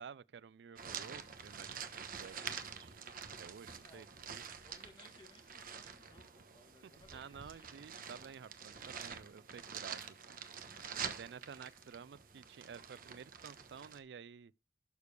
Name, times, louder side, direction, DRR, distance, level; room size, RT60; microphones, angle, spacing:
voice 1, 0.0-3.1 3.4-4.5 6.8-10.4 11.0-14.5, right 6 dB, 70° right, 0.4 m, -52 dB
sound 1, 0.8-14.0, right 7 dB, 50° right, 1.1 m, -47 dB
voice 2, 4.4-7.8, left 2 dB, 25° left, 1.6 m, -63 dB
11.5 x 6.6 x 3.3 m
head